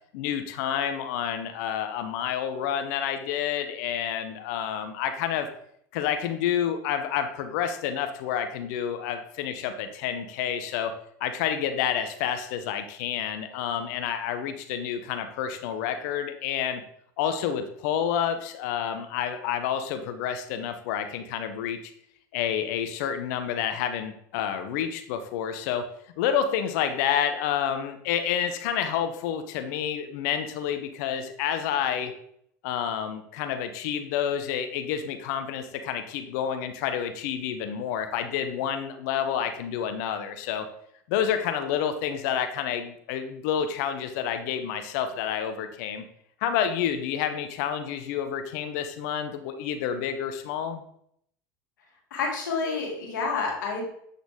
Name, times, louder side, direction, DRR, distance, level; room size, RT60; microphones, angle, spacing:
voice 1, 0.1-5.5 5.9-10.9 11.2-16.8 17.2-21.9 22.3-25.8 26.2-32.1 32.6-40.7 41.1-46.0 46.4-50.8, left 9 dB, 65° left, 8 dB, 0.7 m, -29 dB
voice 2, 52.1-53.8, left 4 dB, 80° left, -1 dB, 2.2 m, -29 dB
8.1 x 4.0 x 3.5 m, 0.69 s
hypercardioid pair, 85°, 10 cm